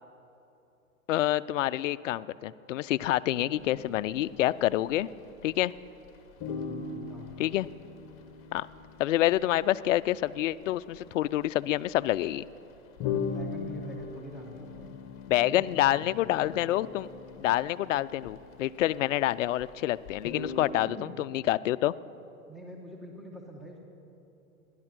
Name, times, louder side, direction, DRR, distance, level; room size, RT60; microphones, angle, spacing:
voice 1, 1.1-5.1 5.4-5.7 7.4-7.7 8.5-8.7 9.0-12.5 15.3-17.1 17.4-21.9, left 14 dB, 60° left, 17 dB, 0.5 m, -27 dB
sound 1, 3.5-5.8 6.0-6.1 6.4-19.7 20.0-20.7, left 5 dB, 30° left, 1.2 m, -40 dB
voice 2, 6.4-7.5 13.2-14.9 15.4-16.1 20.7-21.2 22.5-23.8, equal, ahead, 0 dB, 1.2 m, -45 dB
16.5 x 11.0 x 6.1 m, 2.9 s
hypercardioid pair, 120°, 44 cm